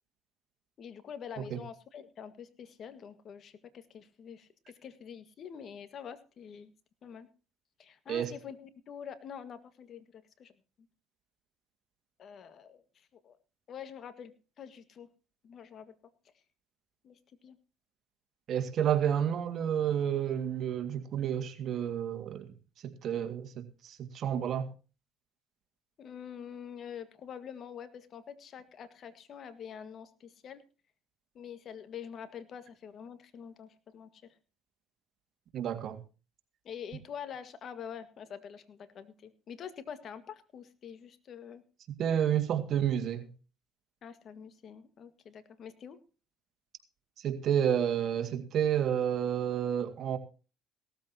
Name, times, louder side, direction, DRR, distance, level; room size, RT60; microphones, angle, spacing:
voice 1, 0.8-6.7 7.0-7.3 7.8-10.5 12.2-13.4 13.7-15.1 15.4-15.9 17.0-17.6 26.0-30.6 31.3-34.4 36.6-41.6 44.0-46.0, left 8 dB, 50° left, 1.8 m, -46 dB
voice 2, 18.5-22.5 22.8-24.7 35.5-36.0 42.0-43.3 47.2-50.2, right 9 dB, 55° right, 2.1 m, -30 dB
17.5 x 13.5 x 2.9 m
supercardioid pair, 90°, 0 cm